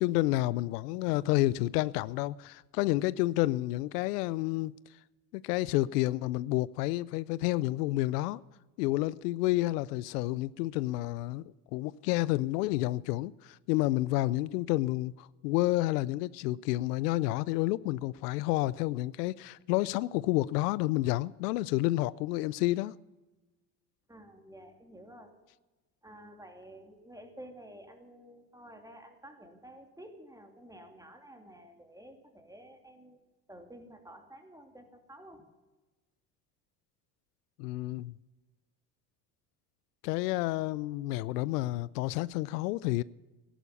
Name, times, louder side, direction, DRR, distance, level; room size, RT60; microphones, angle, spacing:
voice 1, 0.0-4.7 5.3-8.4 8.8-11.4 11.7-22.9 37.6-38.1 40.0-43.0, left 18 dB, 90° left, 0.5 m, -30 dB
voice 2, 24.1-25.3 26.0-33.2 33.5-35.4, right 1 dB, 5° right, 2.9 m, -51 dB
14.5 x 11.5 x 7.0 m
supercardioid pair, 80°, 46 cm